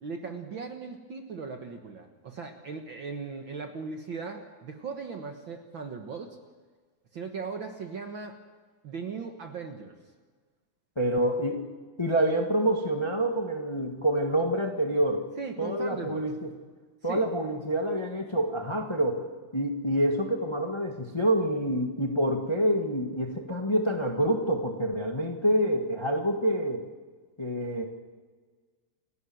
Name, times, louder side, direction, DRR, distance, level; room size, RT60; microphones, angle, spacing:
voice 1, 0.0-6.4 7.1-8.4 8.8-10.0 15.4-16.2 17.0-17.2, right 5 dB, 55° right, 5 dB, 1.5 m, -38 dB
voice 2, 11.0-11.6 12.0-15.2 15.6-16.5 17.0-19.2 19.5-26.8 27.4-27.8, right 1 dB, 30° left, 3 dB, 0.5 m, -27 dB
29.0 x 11.5 x 7.8 m, 1.4 s
omnidirectional pair, 3.7 m